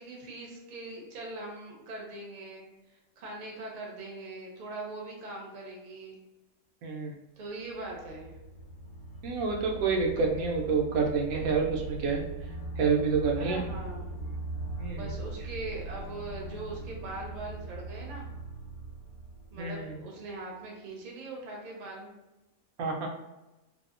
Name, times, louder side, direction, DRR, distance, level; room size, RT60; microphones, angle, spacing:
voice 1, 0.0-2.7 3.2-6.2 7.4-8.3 13.4-14.1 14.9-18.3 19.5-22.1, right 2 dB, 50° right, -1 dB, 0.6 m, -41 dB
voice 2, 6.8-7.1 9.2-12.2 12.8-13.6 14.8-15.0 19.6-19.9 22.8-23.1, right 5 dB, 85° right, 1 dB, 1.0 m, -28 dB
sound 1, 7.5-20.3, right 3 dB, 65° left, 0.6 m, -40 dB
2.7 x 2.1 x 2.4 m, 1.0 s
omnidirectional pair, 1.4 m